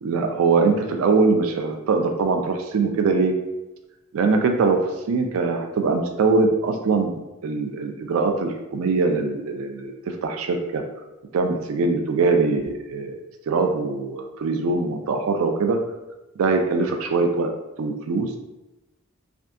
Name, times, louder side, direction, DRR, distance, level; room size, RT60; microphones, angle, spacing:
voice 1, 0.0-3.3 4.1-4.8 5.1-7.1 7.4-9.9 10.2-10.8 11.3-13.2 13.5-15.8 16.4-17.5 17.8-18.3, right 4 dB, 75° right, 5 dB, 0.4 m, -22 dB
3.3 x 2.6 x 2.5 m, 1.0 s
head